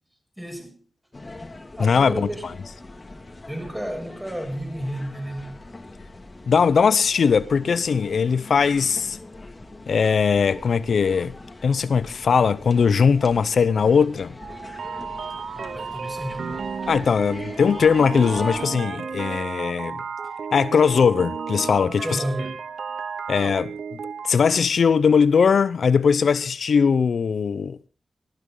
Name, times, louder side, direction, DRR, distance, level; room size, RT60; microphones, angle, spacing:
voice 1, 0.4-0.8 1.8-2.6 3.5-5.6 15.5-16.7 22.0-22.6, equal, 10° right, 7.1 m, -32 dB
sound 1, 1.1-18.6, left 2 dB, 30° left, 2.6 m, -41 dB
voice 2, 1.8-2.3 6.5-9.2 9.9-11.3 11.6-14.3 16.9-20.0 20.5-22.2 23.3-23.7 24.2-27.8, left 6 dB, 80° left, 0.7 m, -20 dB
sound 2, 14.4-24.3, right 6 dB, 85° right, 1.1 m, -33 dB
18.5 x 14.5 x 3.9 m
cardioid pair, 75°, 0 cm